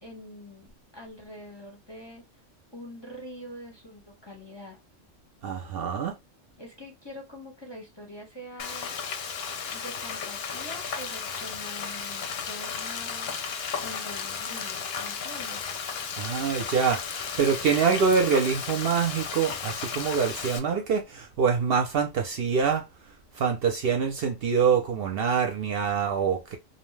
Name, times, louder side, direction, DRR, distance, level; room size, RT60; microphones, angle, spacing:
voice 1, 0.0-2.2 2.7-4.8 6.6-8.9 9.7-13.3 13.8-15.7, equal, 25° left, 0.6 m, -44 dB
voice 2, 5.4-6.2 16.2-22.8 23.3-26.6, right 6 dB, 65° right, 0.7 m, -25 dB
Frying (food), 8.6-20.6, left 6 dB, 65° left, 0.7 m, -34 dB
2.7 x 2.0 x 3.1 m
omnidirectional pair, 1.2 m